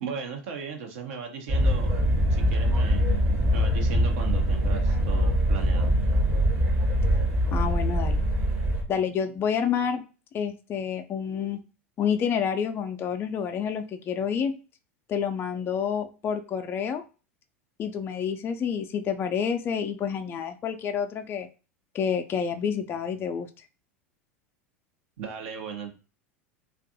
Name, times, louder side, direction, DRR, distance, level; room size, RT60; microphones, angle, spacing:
voice 1, 0.0-2.0 2.3-3.0 3.5-5.9 25.2-25.9, right 5 dB, 65° right, 3 dB, 0.7 m, -37 dB
sound 1, 1.5-8.8, equal, 35° right, 0.8 m, -23 dB
voice 2, 7.5-8.2 8.9-10.0 10.3-11.6 12.0-14.5 15.1-17.0 17.8-21.5 21.9-23.5, left 7 dB, 30° left, 7 dB, 0.3 m, -28 dB
2.6 x 2.3 x 2.6 m, 0.33 s
hypercardioid pair, 85°, 7 cm